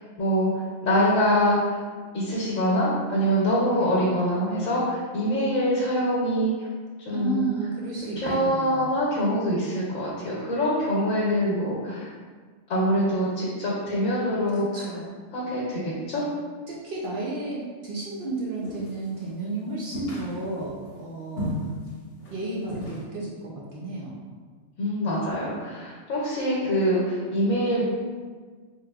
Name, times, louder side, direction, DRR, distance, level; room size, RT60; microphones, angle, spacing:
voice 1, 0.2-0.5 0.8-1.8 2.1-6.7 7.0-7.5 8.2-12.0 12.7-14.6 15.3-16.2 24.8-27.8, equal, 85° left, -6 dB, 1.2 m, -24 dB
voice 2, 3.7-4.1 7.1-9.0 14.5-15.1 16.7-21.6 22.3-24.2, right 2 dB, 60° right, -4 dB, 0.5 m, -33 dB
sound 1, 18.6-19.2 19.9-20.8 21.4-21.9 22.2-22.4 22.7-23.0, equal, 55° left, 0.9 m, -33 dB
3.4 x 3.1 x 2.3 m, 1.5 s
omnidirectional pair, 1.4 m